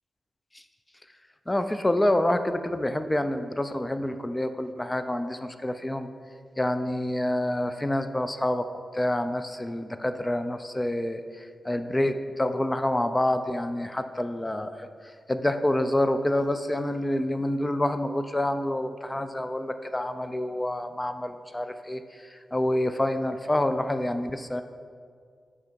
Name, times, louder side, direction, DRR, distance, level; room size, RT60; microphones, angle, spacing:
voice 1, 1.5-6.1 6.6-8.6 8.9-11.2 11.6-14.9 15.3-22.0 22.3-24.6, left 1 dB, 20° left, 9 dB, 0.4 m, -27 dB
5.5 x 4.8 x 4.6 m, 2.1 s
supercardioid pair, 40°, 0 cm